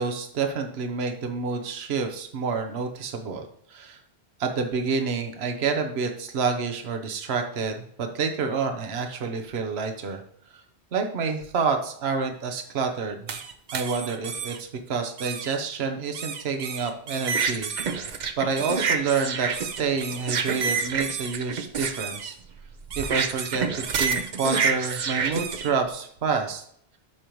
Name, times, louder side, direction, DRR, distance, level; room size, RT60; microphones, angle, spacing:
voice 1, 0.0-4.0 4.4-10.2 10.9-13.2 13.7-18.1 18.4-22.4 23.0-26.6, right 5 dB, 70° right, 4 dB, 1.1 m, -28 dB
sound 1, 13.3-14.6 15.2-15.6 16.1-25.7, right 5 dB, 50° right, 0.7 m, -29 dB
12.0 x 5.2 x 3.1 m, 0.66 s
omnidirectional pair, 1.1 m